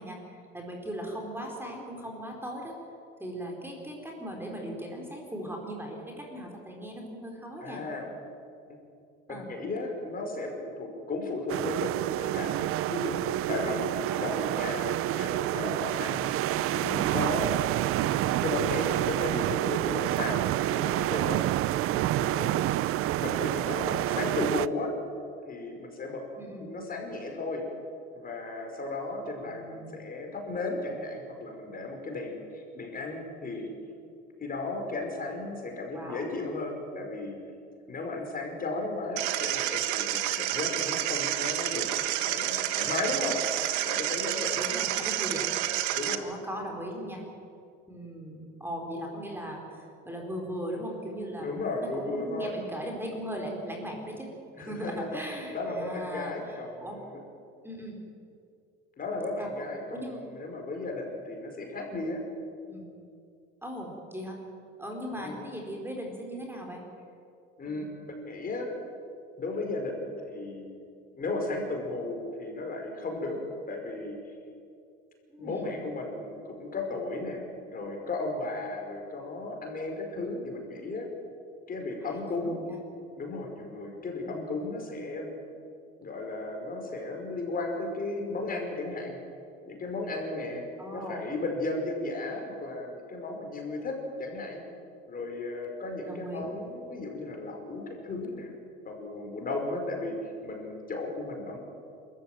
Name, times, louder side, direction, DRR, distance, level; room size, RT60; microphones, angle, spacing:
voice 1, 0.0-2.7 3.2-7.8 9.3-9.5 14.1-14.4 26.4-26.7 29.4-30.1 35.9-36.3 44.6-45.6 46.2-47.2 47.9-51.6 52.0-54.3 54.6-57.0 57.6-58.0 59.4-59.5 59.9-60.2 62.7-62.9 63.6-64.4 64.8-66.8 67.7-67.9 75.3-75.8 82.0-82.8 84.2-84.4 90.8-91.3 96.1-96.5, equal, 5° right, 1 dB, 4.5 m, -39 dB
voice 2, 7.6-8.2 9.3-17.5 17.9-21.4 22.1-24.9 25.5-26.2 26.6-27.7 28.1-33.7 34.4-37.4 37.9-41.9 42.1-43.4 43.8-44.6 45.9-46.3 51.4-52.5 54.6-55.2 55.5-57.2 59.0-60.0 60.3-62.2 65.2-65.5 67.6-68.7 69.4-70.7 71.1-73.4 73.7-74.2 75.4-81.1 81.7-82.6 83.2-85.3 86.0-89.2 89.7-90.6 90.9-94.6 95.1-98.5 98.9-100.2 100.4-101.6, left 2 dB, 30° left, 2 dB, 5.3 m, -35 dB
sound 1, 11.5-24.7, right 15 dB, 50° right, 0.6 m, -28 dB
sound 2, 39.2-46.2, right 14 dB, 70° right, 1.6 m, -29 dB
28.0 x 14.0 x 9.3 m, 2.5 s
supercardioid pair, 110°, 30 cm